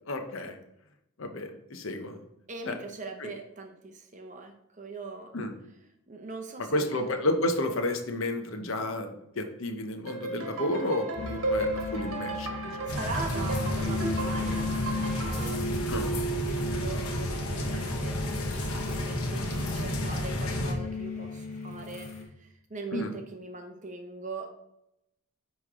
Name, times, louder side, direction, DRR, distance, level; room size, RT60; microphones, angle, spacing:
voice 1, 0.1-0.6 1.2-2.2 2.7-2.8 3.2-3.3 5.3-5.5 6.7-12.9 15.9-16.1 22.9-23.1, left 1 dB, 65° left, 6 dB, 0.7 m, -31 dB
voice 2, 2.5-5.3 6.1-7.1 12.8-18.2 18.5-24.5, right 3 dB, 35° right, 4 dB, 0.6 m, -41 dB
sound 1, 10.1-15.6, right 2 dB, 70° right, 1.3 m, -34 dB
sound 2, 11.1-22.2, left 1 dB, 30° left, 1.3 m, -36 dB
sound 3, 12.9-20.7, left 1 dB, 85° left, 1.0 m, -31 dB
9.4 x 3.2 x 3.7 m, 0.80 s
head